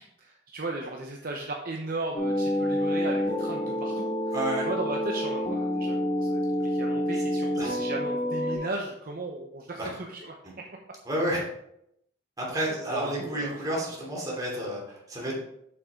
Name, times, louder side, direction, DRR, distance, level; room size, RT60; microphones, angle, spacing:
voice 1, 0.2-10.3 12.9-13.6, right 2 dB, 50° right, 1 dB, 0.8 m, -36 dB
sound 1, 2.1-8.6, equal, 45° left, 2.1 m, -28 dB
voice 2, 4.3-4.7 7.1-7.2 7.5-7.7 9.8-9.9 11.0-11.4 12.4-15.4, right 1 dB, 20° right, -4 dB, 3.0 m, -30 dB
7.3 x 6.5 x 3.7 m, 0.77 s
head